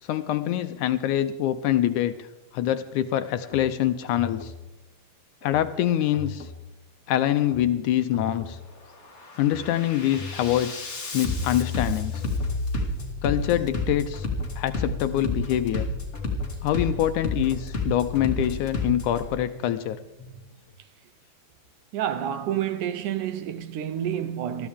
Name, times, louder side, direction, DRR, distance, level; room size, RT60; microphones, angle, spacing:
voice 1, 0.0-2.3 2.5-4.5 5.4-6.5 7.1-8.6 9.4-12.2 13.2-14.3 14.6-15.9 16.6-20.0, left 12 dB, 75° left, 1.9 m, -25 dB
Bass drum, 3.4-3.7 4.1-4.6 5.4-5.7 6.1-6.6 7.4-7.7 8.1-8.6 9.0-19.3, left 2 dB, 25° left, 2.0 m, -31 dB
sound 1, 12.3-20.8, right 1 dB, 50° left, 3.3 m, -45 dB
voice 2, 21.9-24.7, right 10 dB, 75° right, 2.2 m, -29 dB
21.0 x 14.0 x 3.6 m
omnidirectional pair, 3.9 m